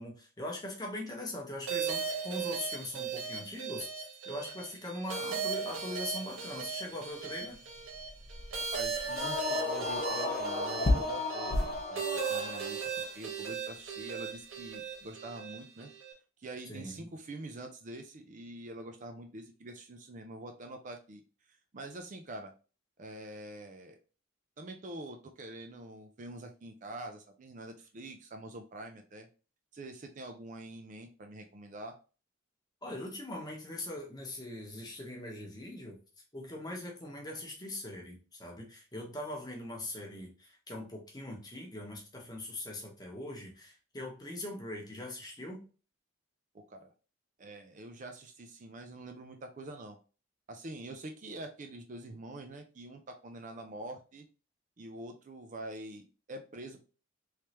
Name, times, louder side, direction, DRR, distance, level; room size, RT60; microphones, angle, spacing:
voice 1, 0.0-7.6 16.6-17.0 32.8-36.0 36.3-45.6, left 1 dB, 20° left, -1 dB, 1.0 m, -41 dB
sound 1, 1.7-16.1, right 6 dB, 85° right, 1.0 m, -38 dB
sound 2, 5.4-11.9, left 2 dB, 80° left, 1.0 m, -37 dB
voice 2, 8.6-15.9 16.4-21.2 21.5-22.5 23.0-24.0 24.6-29.3 29.7-32.0 46.5-46.9 47.4-50.0 50.5-54.2 54.8-56.8, right 1 dB, 40° right, 5 dB, 0.4 m, -45 dB
sound 3, 9.0-13.0, left 2 dB, 40° left, 0.4 m, -35 dB
3.3 x 3.2 x 2.9 m, 0.35 s
head